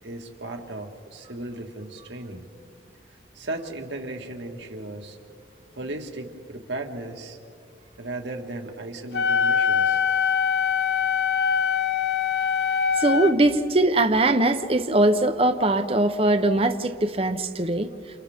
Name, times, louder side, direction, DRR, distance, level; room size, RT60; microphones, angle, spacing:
voice 1, 0.0-2.5 3.3-5.2 5.7-7.4 8.0-10.0, right 2 dB, 80° right, 2 dB, 2.0 m, -36 dB
Wind instrument woodwind instrument, 9.1-13.4, left 6 dB, 65° left, 1.0 m, -23 dB
voice 2, 13.0-17.9, right 2 dB, 30° right, 8 dB, 0.9 m, -21 dB
29.5 x 29.5 x 3.7 m, 2.3 s
head